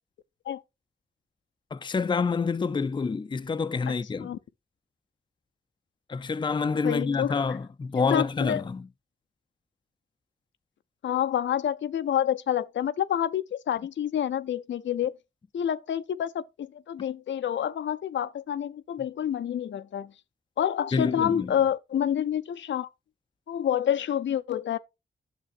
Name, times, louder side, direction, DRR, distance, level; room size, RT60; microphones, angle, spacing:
voice 1, 1.7-4.3 6.1-8.9 20.9-21.5, left 4 dB, 25° left, 0.4 m, -27 dB
voice 2, 6.8-7.4 8.0-8.6 11.0-15.1 15.5-20.1 20.6-22.9 23.5-24.8, left 10 dB, 80° left, 0.5 m, -28 dB
11.0 x 6.7 x 2.5 m
wide cardioid pair, 90°, 19 cm